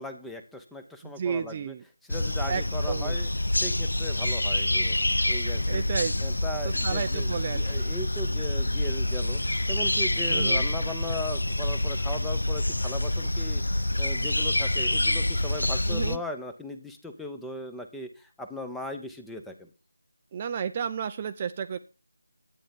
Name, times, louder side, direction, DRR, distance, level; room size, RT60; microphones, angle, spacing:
voice 1, 0.0-1.7 2.1-3.3 3.6-5.0 5.3-5.8 6.2-9.4 9.7-13.6 14.0-19.7, left 1 dB, ahead, 5 dB, 0.9 m, -38 dB
voice 2, 1.0-1.8 2.5-3.2 5.7-6.2 6.6-7.9 10.3-10.6 15.8-16.2 20.3-21.8, right 7 dB, 25° right, 9 dB, 0.6 m, -32 dB
sound 1, 2.1-16.2, left 1 dB, 85° left, 0.6 m, -27 dB
11.5 x 8.9 x 5.3 m, 0.33 s
figure-of-eight pair, 165°, 0 cm